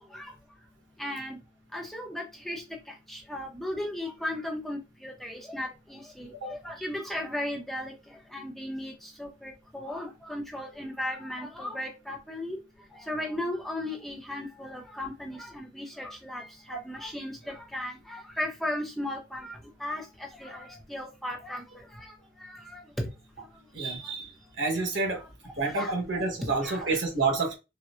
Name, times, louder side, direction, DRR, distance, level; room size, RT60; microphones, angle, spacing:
voice 1, 1.0-1.4 1.7-2.6 3.1-7.9 8.3-8.9 9.2-12.6 13.1-20.0 20.4-21.6 22.4-23.1 25.8-25.9 26.6-26.8, left 1 dB, ahead, 0.6 m, -36 dB
voice 2, 23.7-24.3 24.6-25.2 25.6-27.6, right 3 dB, 90° right, 1.3 m, -28 dB
4.2 x 2.1 x 2.4 m
head